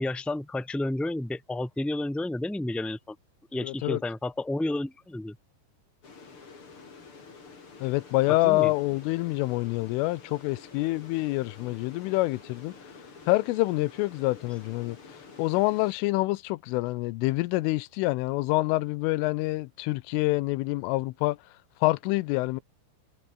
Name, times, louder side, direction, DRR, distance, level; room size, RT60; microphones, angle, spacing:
voice 1, 0.0-3.2 3.5-5.4 8.3-8.7, left 2 dB, ahead, 3.6 m, -31 dB
voice 2, 3.6-4.0 7.8-12.7 13.3-21.4 21.8-22.6, left 21 dB, 85° left, 3.1 m, -27 dB
sound 1, 6.0-15.9, left 4 dB, 30° left, 3.9 m, -49 dB
omnidirectional pair, 5.9 m